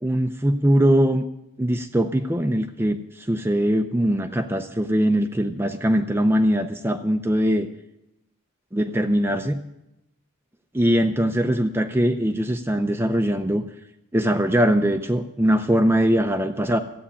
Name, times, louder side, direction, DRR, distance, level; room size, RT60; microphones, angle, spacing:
voice 1, 0.0-1.2 1.6-7.7 8.7-9.6 10.7-13.6 14.1-16.8, equal, 10° right, 6 dB, 0.6 m, -21 dB
13.5 x 8.6 x 9.9 m, 0.87 s
head